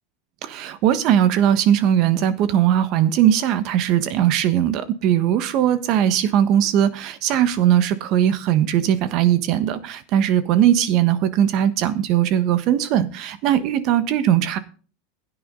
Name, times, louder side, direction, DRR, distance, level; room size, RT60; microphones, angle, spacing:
voice 1, 0.4-14.6, right 10 dB, 40° right, 1.3 m, -19 dB
16.5 x 9.4 x 3.9 m
supercardioid pair, 165°, 0 cm